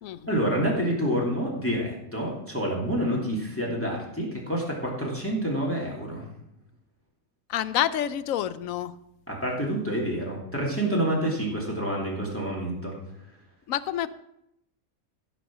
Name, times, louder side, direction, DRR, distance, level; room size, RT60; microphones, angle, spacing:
voice 1, 0.3-6.3 9.3-13.0, right 1 dB, 10° left, -3 dB, 2.8 m, -28 dB
voice 2, 7.5-9.0 13.7-14.1, left 11 dB, 85° left, 15 dB, 1.0 m, -28 dB
15.5 x 5.5 x 7.5 m, 0.79 s
omnidirectional pair, 1.4 m